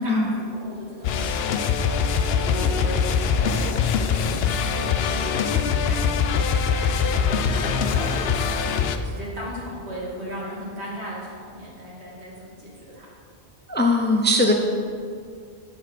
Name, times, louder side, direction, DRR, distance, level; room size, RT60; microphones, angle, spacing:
voice 1, 0.0-1.9 2.3-3.7 4.0-13.1, equal, 85° right, -6 dB, 2.7 m, -37 dB
sound 1, 1.0-9.0, left 6 dB, 70° left, 0.8 m, -23 dB
voice 2, 13.7-14.5, left 1 dB, 15° left, 3 dB, 0.4 m, -20 dB
7.0 x 6.9 x 5.8 m, 2.1 s
omnidirectional pair, 1.1 m